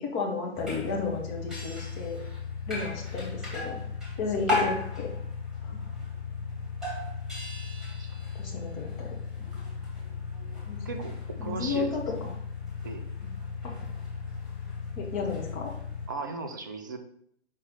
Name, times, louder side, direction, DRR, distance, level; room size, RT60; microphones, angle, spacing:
voice 1, 0.0-2.2 2.7-3.8 4.2-5.1 5.7-5.8 8.4-9.2 10.7-11.0 11.4-12.1 13.2-13.3 13.6-13.7 15.0-15.7, left 4 dB, 20° left, 0 dB, 1.3 m, -33 dB
sound 1, 0.5-16.1, left 4 dB, ahead, 2.0 m, -35 dB
voice 2, 10.8-12.3 12.8-13.0 16.1-17.0, right 4 dB, 20° right, 6 dB, 0.4 m, -37 dB
5.4 x 4.1 x 5.4 m, 0.66 s
figure-of-eight pair, 125°, 33 cm